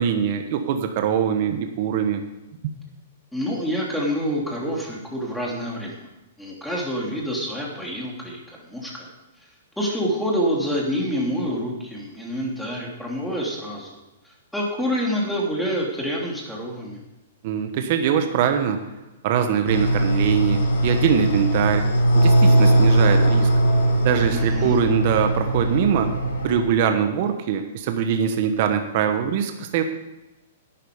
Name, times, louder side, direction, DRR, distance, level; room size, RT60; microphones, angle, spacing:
voice 1, 0.0-2.2 17.4-18.8 19.2-21.8 22.1-23.5 24.0-26.1 26.4-29.8, right 8 dB, 50° right, 6 dB, 1.2 m, -22 dB
voice 2, 3.3-6.0 6.4-9.1 9.8-14.0 14.2-17.0 24.3-24.8, equal, ahead, -3 dB, 3.2 m, -27 dB
sound 1, 19.7-26.6, right 1 dB, 85° left, 3.7 m, -19 dB
11.5 x 9.5 x 5.2 m, 1.0 s
hypercardioid pair, 145°, 0 cm